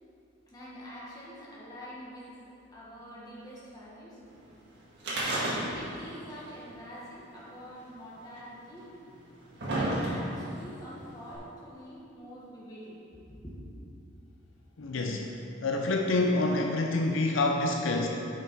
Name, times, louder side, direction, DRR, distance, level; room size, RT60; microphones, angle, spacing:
voice 1, 0.5-4.2 5.6-8.9 9.7-13.5, equal, 20° left, -7 dB, 1.7 m, -46 dB
sound 1, 5.0-6.0 6.3-6.4 7.4-7.5 8.4-8.5 9.1-10.5 11.3-11.4, right 1 dB, 55° right, 1.9 m, -30 dB
voice 2, 14.8-18.1, left 2 dB, 70° left, 2 dB, 0.6 m, -27 dB
8.8 x 5.8 x 4.6 m, 2.8 s
head